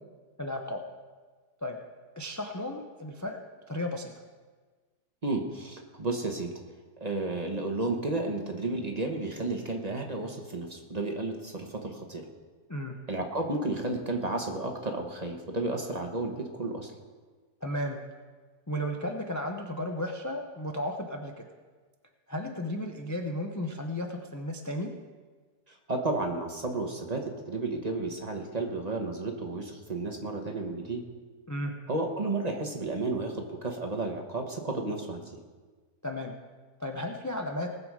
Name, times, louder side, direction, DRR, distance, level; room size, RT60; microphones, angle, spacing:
voice 1, 0.4-0.8 1.6-1.8 2.2-3.4 3.7-4.1 12.7-13.0 17.6-18.0 18.7-21.5 22.3-24.9 31.5-31.7 36.0-36.3 36.8-37.7, left 1 dB, 25° left, 3 dB, 0.4 m, -34 dB
voice 2, 5.2-6.5 7.0-12.2 13.1-16.9 25.7-31.0 31.9-35.3, right 2 dB, 30° right, 3 dB, 1.1 m, -32 dB
19.0 x 6.9 x 4.8 m, 1.4 s
omnidirectional pair, 1.7 m